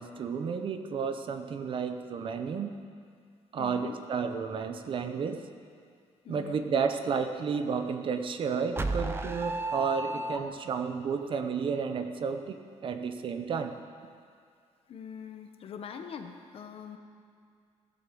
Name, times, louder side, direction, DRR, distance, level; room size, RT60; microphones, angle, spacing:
voice 1, 0.0-2.7 3.5-5.4 6.3-12.6 12.8-13.7, right 6 dB, 45° right, 8 dB, 0.8 m, -32 dB
voice 2, 3.6-4.0 6.2-6.6 14.9-17.0, left 7 dB, 55° left, 6 dB, 1.0 m, -43 dB
sound 1, 8.8-10.9, right 2 dB, 20° right, 0.6 m, -33 dB
16.0 x 8.0 x 7.7 m, 2.2 s
wide cardioid pair, 170°, 12 cm